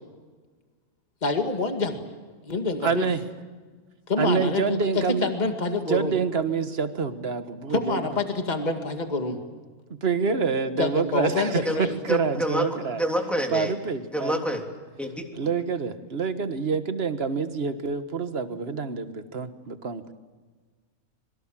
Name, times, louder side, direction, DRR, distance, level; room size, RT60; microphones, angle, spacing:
voice 1, 1.2-2.0 2.5-3.1 4.1-6.1 7.7-9.4 10.8-11.9, left 3 dB, 30° left, 5 dB, 2.3 m, -26 dB
voice 2, 2.8-3.2 4.2-5.3 5.9-8.0 10.0-13.0 13.5-14.4 15.3-20.1, right 5 dB, 45° right, 9 dB, 1.6 m, -27 dB
voice 3, 12.1-13.7 14.1-14.6 15.0-15.3, right 1 dB, ahead, 2 dB, 3.1 m, -27 dB
26.0 x 23.5 x 7.5 m, 1.5 s
omnidirectional pair, 1.6 m